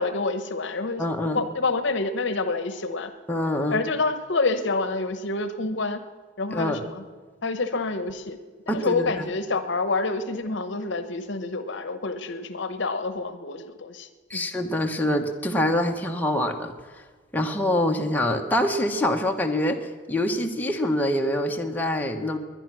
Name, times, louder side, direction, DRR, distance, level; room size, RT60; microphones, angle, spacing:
voice 1, 0.0-1.0 1.3-3.1 3.7-6.0 6.4-7.0 7.4-8.4 8.7-14.5, left 3 dB, 65° left, 10 dB, 0.9 m, -27 dB
voice 2, 1.0-1.4 3.3-3.8 6.5-6.8 8.7-9.1 14.3-16.7 17.3-22.4, left 1 dB, 10° left, 2 dB, 1.1 m, -25 dB
21.0 x 10.0 x 6.2 m, 1.5 s
head